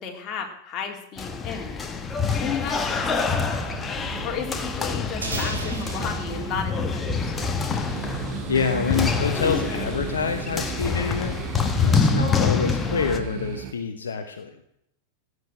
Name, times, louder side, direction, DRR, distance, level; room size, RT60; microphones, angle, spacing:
voice 1, 0.0-1.9 2.4-3.6 4.2-7.3, left 7 dB, 30° left, 1 dB, 3.1 m, -33 dB
sound 1, 1.2-13.2, left 5 dB, 15° left, 1.6 m, -26 dB
sound 2, 2.8-13.7, right 9 dB, 45° right, 1.4 m, -36 dB
sound 3, 5.2-8.0, right 2 dB, 75° right, 3.3 m, -36 dB
voice 2, 8.5-11.4 11.8-14.6, left 6 dB, 70° left, 6 dB, 1.1 m, -27 dB
16.0 x 8.1 x 8.9 m, 0.77 s
figure-of-eight pair, 90°, 0 cm